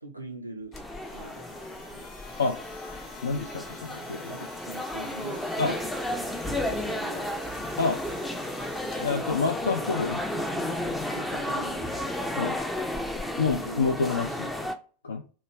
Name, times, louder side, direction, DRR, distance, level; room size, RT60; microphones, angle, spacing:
voice 1, 0.0-0.8 1.1-1.7 1.9-2.0 3.2-3.4 4.3-5.5 6.5-7.3 9.4-9.5 10.0-10.7 11.1-11.9 13.4-13.8, right 1 dB, 85° right, 3 dB, 0.4 m, -43 dB
sound 1, 0.6-14.7, left 2 dB, 35° left, 0.8 m, -48 dB
sound 2, 0.7-14.8, left 1 dB, 5° left, 0.4 m, -33 dB
voice 2, 3.2-4.3 5.6-5.8 7.8-8.0 8.9-10.2 12.4-12.6 13.4-14.5 15.0-15.2, left 4 dB, 70° left, 4 dB, 0.3 m, -27 dB
3.1 x 2.3 x 3.1 m, 0.39 s
figure-of-eight pair, 90°, 0 cm